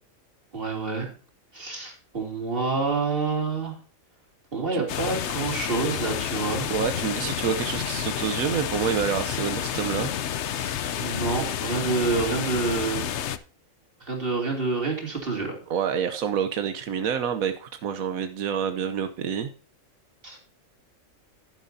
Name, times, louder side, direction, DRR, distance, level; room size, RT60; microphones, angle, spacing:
voice 1, 0.5-1.1 1.5-3.8 4.5-6.7 10.4-13.1 14.0-15.6 20.2-20.4, right 4 dB, 40° right, 1 dB, 3.3 m, -28 dB
sound 1, 4.9-13.4, left 9 dB, 60° left, 0.9 m, -30 dB
voice 2, 6.7-10.1 15.7-19.5, right 7 dB, 90° right, 8 dB, 1.3 m, -27 dB
11.0 x 10.5 x 2.7 m, 0.40 s
omnidirectional pair, 1.4 m